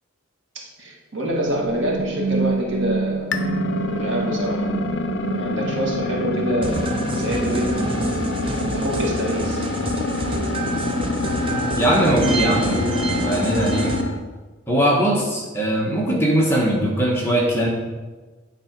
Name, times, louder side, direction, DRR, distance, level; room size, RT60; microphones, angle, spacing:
voice 1, 0.5-3.4 3.9-4.6 5.4-7.8 8.7-9.6, right 1 dB, 65° right, -2 dB, 1.7 m, -26 dB
sound 1, 1.4-9.1, right 3 dB, 50° right, 1.4 m, -29 dB
sound 2, 3.3-14.2, left 2 dB, 60° left, 0.6 m, -26 dB
sound 3, 6.6-14.0, right 2 dB, 25° right, 0.5 m, -28 dB
voice 2, 11.8-13.9 14.7-17.7, right 1 dB, 10° left, -3 dB, 1.1 m, -20 dB
8.7 x 3.8 x 5.1 m, 1.3 s
head